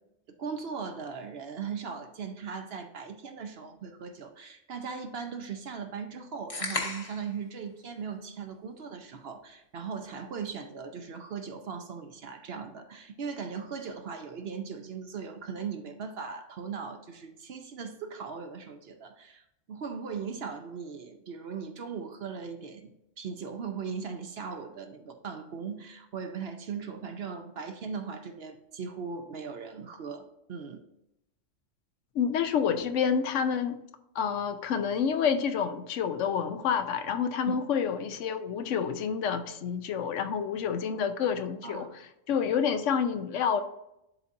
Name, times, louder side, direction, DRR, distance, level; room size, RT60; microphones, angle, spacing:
voice 1, 0.4-30.8 37.5-37.6 41.6-41.9, right 6 dB, 60° right, 6 dB, 0.9 m, -39 dB
sound 1, 6.5-7.3, left 2 dB, 30° left, 0.9 m, -33 dB
voice 2, 32.1-33.8 34.1-43.6, left 7 dB, 75° left, 9 dB, 0.9 m, -28 dB
11.0 x 4.1 x 2.5 m, 0.84 s
omnidirectional pair, 1.3 m